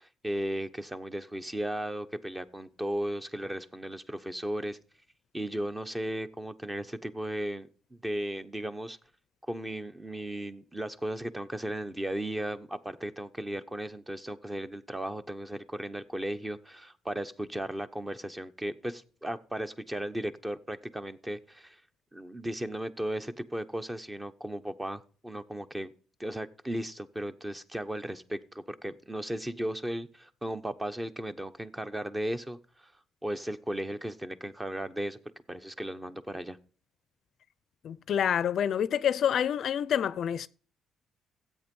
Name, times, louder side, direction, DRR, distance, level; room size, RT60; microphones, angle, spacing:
voice 1, 0.0-4.8 5.3-9.0 9.5-21.8 22.1-25.9 26.2-32.9 33.2-35.2 35.5-36.6, right 1 dB, 15° right, 1.0 m, -36 dB
voice 2, 37.8-40.5, left 9 dB, 60° left, 0.5 m, -27 dB
13.5 x 8.4 x 5.4 m
cardioid pair, 85°, 0 cm